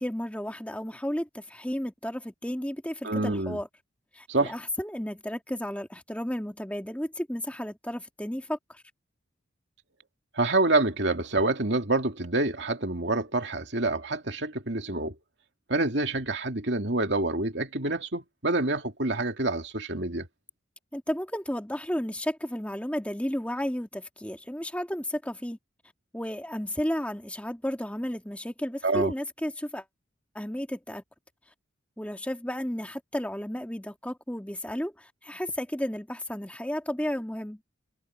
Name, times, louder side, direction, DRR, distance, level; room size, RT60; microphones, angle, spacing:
voice 1, 0.0-3.7 4.1-8.8 20.9-25.6 26.1-29.9 30.3-31.0 32.0-37.6, equal, 5° left, 1.9 m, -33 dB
voice 2, 3.0-3.6 4.3-4.5 10.3-15.1 15.7-20.3 28.8-29.1, right 2 dB, 60° right, 2.7 m, -27 dB
head